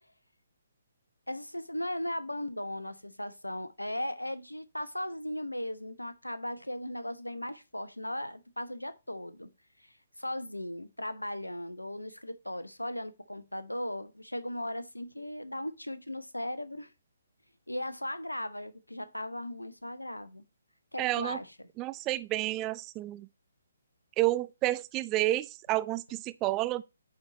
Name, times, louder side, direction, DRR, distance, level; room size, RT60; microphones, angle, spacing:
voice 1, 1.3-9.5 9.8-16.9 17.7-20.4 20.9-21.7, left 1 dB, 85° left, 1.0 m, -37 dB
voice 2, 21.0-21.4 21.8-23.3 24.2-26.8, right 17 dB, 20° right, 0.4 m, -30 dB
9.1 x 4.3 x 4.0 m
figure-of-eight pair, 135°, 0 cm